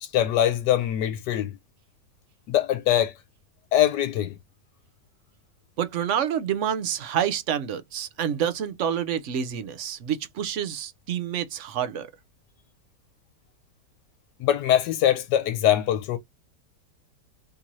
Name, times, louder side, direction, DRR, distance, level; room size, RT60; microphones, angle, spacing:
voice 1, 0.0-1.6 2.5-3.1 3.7-4.4 14.4-16.2, left 11 dB, 85° left, 1.2 m, -22 dB
voice 2, 5.8-12.1, right 9 dB, 60° right, 0.8 m, -28 dB
3.7 x 2.7 x 3.0 m
omnidirectional pair, 1.9 m